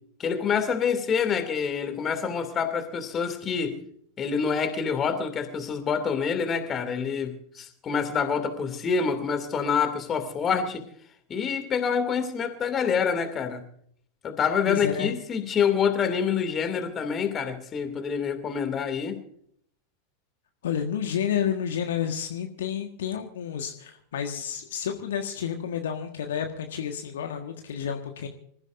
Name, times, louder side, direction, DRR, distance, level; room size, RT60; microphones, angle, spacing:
voice 1, 0.2-3.8 4.2-10.9 11.3-13.6 14.2-19.2, left 6 dB, 25° left, 2.6 m, -27 dB
voice 2, 14.7-15.1 20.6-28.3, left 8 dB, 60° left, 1.6 m, -30 dB
26.0 x 15.0 x 2.6 m
figure-of-eight pair, 90°, 0 cm